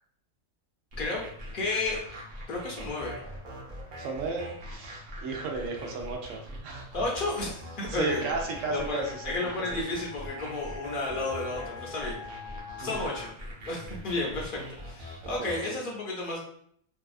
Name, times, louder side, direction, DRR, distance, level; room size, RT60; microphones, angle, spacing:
sound 1, 0.9-15.7, equal, 50° right, 0.6 m, -43 dB
voice 1, 1.5-2.0 2.5-3.1 6.9-8.3 8.7-12.2 12.8-13.3 13.7-16.4, left 2 dB, 50° left, -2 dB, 0.7 m, -32 dB
voice 2, 4.0-6.8 7.9-9.0 12.8-13.1 15.4-15.8, right 4 dB, 75° right, 1 dB, 1.0 m, -34 dB
Wind instrument woodwind instrument, 8.0-13.4, left 8 dB, 85° left, 0.4 m, -45 dB
2.7 x 2.3 x 2.4 m, 0.65 s
omnidirectional pair, 1.4 m